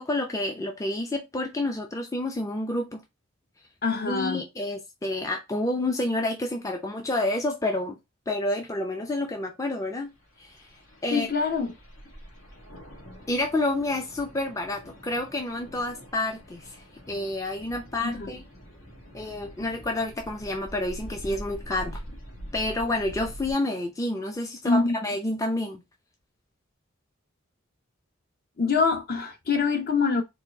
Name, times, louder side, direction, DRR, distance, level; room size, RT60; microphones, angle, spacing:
voice 1, 0.0-3.0 4.1-8.0 8.3-10.1 10.4-10.6 11.0-11.3 13.3-18.4 19.1-22.0 22.5-25.8, left 2 dB, 15° left, 0.5 m, -29 dB
voice 2, 3.8-4.4 11.1-11.7 18.0-18.3 24.6-25.0 28.6-30.2, left 4 dB, 45° left, 0.9 m, -24 dB
sound 1, 10.1-23.5, equal, 75° left, 1.4 m, -44 dB
4.3 x 2.5 x 3.4 m
head